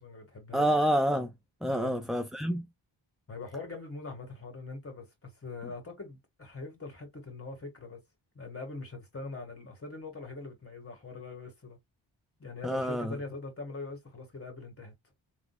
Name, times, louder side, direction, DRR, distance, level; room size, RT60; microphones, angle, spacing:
voice 1, 0.0-0.7 1.7-2.0 3.3-8.0 8.3-11.8 12.4-14.9, left 3 dB, 30° left, 2.0 m, -42 dB
voice 2, 0.5-1.3 1.6-2.7 12.6-13.1, equal, ahead, 0.4 m, -28 dB
4.0 x 2.9 x 2.4 m
cardioid pair, 65°, 49 cm